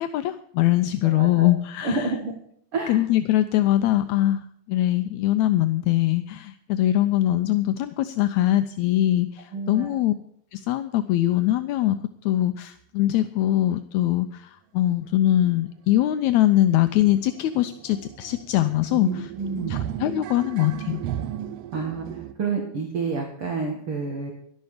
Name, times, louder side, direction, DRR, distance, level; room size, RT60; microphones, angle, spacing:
voice 1, 0.0-2.1 2.9-4.4 4.7-10.1 10.5-12.0 12.3-19.3 19.7-21.0, left 14 dB, 80° left, 10 dB, 1.8 m, -22 dB
voice 2, 1.0-1.5 1.8-2.3 2.7-3.1 9.5-10.0 18.9-19.8 21.7-24.3, right 4 dB, 50° right, 2 dB, 2.4 m, -29 dB
sound 1, 15.5-15.6 15.9-16.0 16.3-22.3, right 11 dB, 70° right, 1.6 m, -35 dB
13.0 x 11.5 x 5.0 m, 0.69 s
omnidirectional pair, 3.6 m